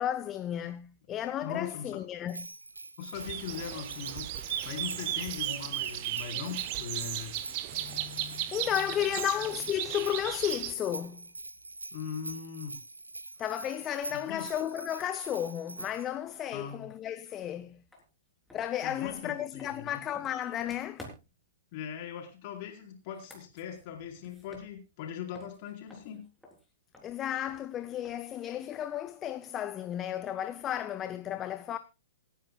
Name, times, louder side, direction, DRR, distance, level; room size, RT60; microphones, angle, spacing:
voice 1, 0.0-2.5 7.7-11.3 13.4-17.8 18.5-21.1 27.0-31.8, left 11 dB, 20° left, 0.6 m, -33 dB
voice 2, 1.4-2.0 3.0-7.4 11.9-12.8 14.1-14.5 16.5-16.9 18.8-20.0 21.7-26.3, left 8 dB, 40° left, 4.3 m, -40 dB
Bell, 2.3-16.1, right 2 dB, 85° right, 0.8 m, -44 dB
sound 1, 3.1-10.7, right 14 dB, 40° right, 1.0 m, -36 dB
sound 2, 17.9-18.0 18.5-21.5 23.0-25.1 25.3-28.4, left 1 dB, ahead, 3.8 m, -53 dB
27.0 x 10.0 x 2.3 m
figure-of-eight pair, 110°, 0 cm